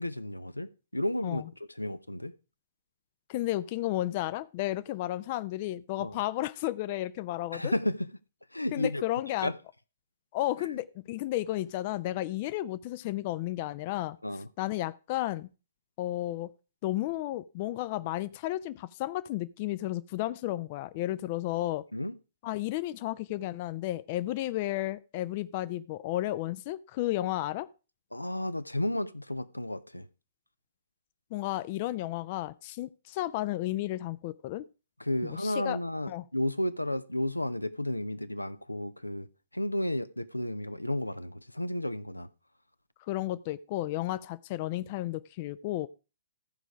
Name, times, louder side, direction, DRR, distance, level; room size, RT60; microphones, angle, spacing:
voice 1, 0.0-1.4 1.8-2.3 6.0-6.2 7.5-8.1 8.5-9.0 9.4-9.5 14.2-14.5 21.9-22.2 28.1-30.1 35.0-42.3, left 1 dB, 90° left, 0.5 m, -32 dB
voice 2, 3.3-7.7 8.7-9.5 10.3-14.2 14.6-15.5 16.0-16.5 16.8-21.9 22.4-27.7 31.3-34.7 35.2-35.8 36.1-36.2 43.1-45.9, left 15 dB, 35° left, 0.4 m, -33 dB
14.5 x 5.0 x 4.7 m
figure-of-eight pair, 120°, 0 cm